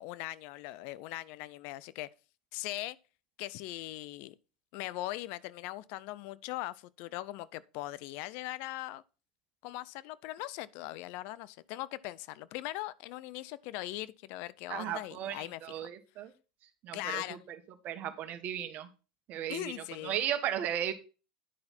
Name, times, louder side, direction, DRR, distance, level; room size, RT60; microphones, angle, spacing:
voice 1, 0.0-2.1 2.5-3.0 3.4-4.4 4.7-9.0 9.6-15.8 16.9-17.4 19.5-20.2, left 16 dB, 60° left, 0.5 m, -40 dB
voice 2, 14.7-16.3 16.8-17.2 17.8-18.9 19.3-19.7 20.0-20.9, right 10 dB, 45° right, 1.5 m, -35 dB
10.0 x 5.7 x 4.3 m
hypercardioid pair, 95°, 4 cm